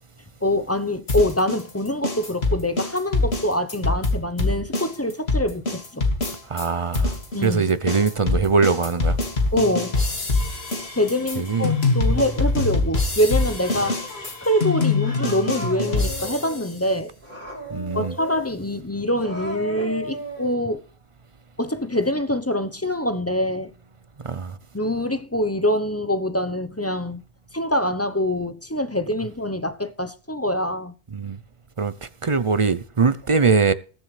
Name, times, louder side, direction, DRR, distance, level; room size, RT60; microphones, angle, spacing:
voice 1, 0.4-6.1 7.3-7.6 9.5-10.0 10.9-14.0 14.4-17.1 17.9-20.8 21.6-23.7 24.7-27.2 27.5-30.9, left 1 dB, 15° left, 0.8 m, -24 dB
sound 1, 1.1-6.7 6.9-16.7, left 3 dB, 80° left, 2.6 m, -24 dB
voice 2, 6.5-7.1 7.4-9.2 11.4-11.7 17.7-18.1 24.2-24.6 31.1-31.4 31.8-33.7, right 4 dB, 35° right, 0.6 m, -22 dB
Cat, 13.6-14.3 15.0-16.7 17.2-18.5 19.1-20.6, equal, 60° right, 5.8 m, -36 dB
20.5 x 7.4 x 3.3 m
omnidirectional pair, 1.0 m